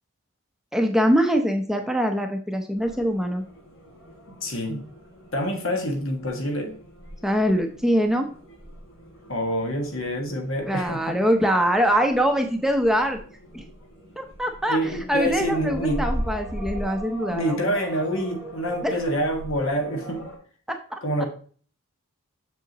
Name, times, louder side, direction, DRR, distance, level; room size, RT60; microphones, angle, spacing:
voice 1, 0.7-3.4 7.2-8.3 10.7-13.2 13.5-13.6 14.2-17.7 18.8-18.9 20.7-21.0, equal, ahead, 4 dB, 0.7 m, -23 dB
sound 1, 2.8-20.4, right 1 dB, 85° left, 3.6 m, -39 dB
voice 2, 4.4-4.8 5.3-6.7 9.3-11.2 14.7-16.0 17.3-20.2 21.0-21.3, equal, 70° left, 3 dB, 1.7 m, -26 dB
7.4 x 7.0 x 3.0 m, 0.43 s
head